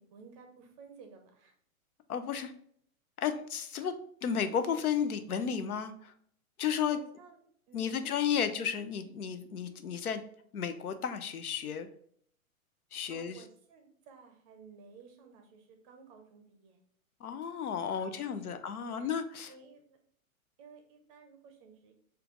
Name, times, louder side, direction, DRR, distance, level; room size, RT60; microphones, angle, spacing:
voice 1, 0.0-1.6 3.8-3.9 6.9-8.5 13.1-16.8 18.0-18.6 18.9-19.1 19.5-20.0 20.6-21.9, right 5 dB, 25° right, 4 dB, 0.5 m, -55 dB
voice 2, 2.1-2.5 3.2-3.9 4.2-6.1 6.6-7.0 7.7-10.2 10.5-11.9 12.9-13.4 17.2-19.5, left 7 dB, 90° left, 10 dB, 0.6 m, -33 dB
4.4 x 2.4 x 3.7 m, 0.64 s
hypercardioid pair, 125°, 43 cm